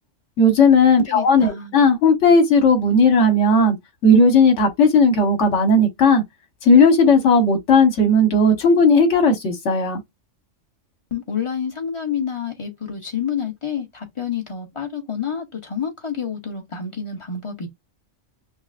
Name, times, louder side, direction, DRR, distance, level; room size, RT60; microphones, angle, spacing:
voice 1, 0.4-3.8 4.0-6.2 6.6-10.0, left 2 dB, 75° left, 1.4 m, -15 dB
voice 2, 1.1-1.7 11.1-17.7, left 7 dB, 30° left, 0.8 m, -28 dB
5.7 x 2.0 x 2.4 m
omnidirectional pair, 1.2 m